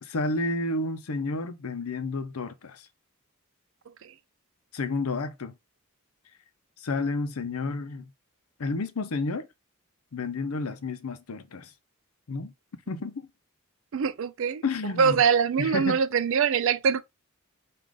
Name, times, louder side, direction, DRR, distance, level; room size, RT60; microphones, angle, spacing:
voice 1, 0.0-2.9 4.7-5.5 6.8-8.1 8.6-9.5 10.1-11.7 12.3-12.5 12.9-13.3 14.6-15.2 15.6-16.0, left 3 dB, 80° left, 0.6 m, -31 dB
voice 2, 13.9-14.6 15.0-17.0, right 6 dB, 60° right, 0.4 m, -24 dB
4.8 x 2.5 x 3.7 m
head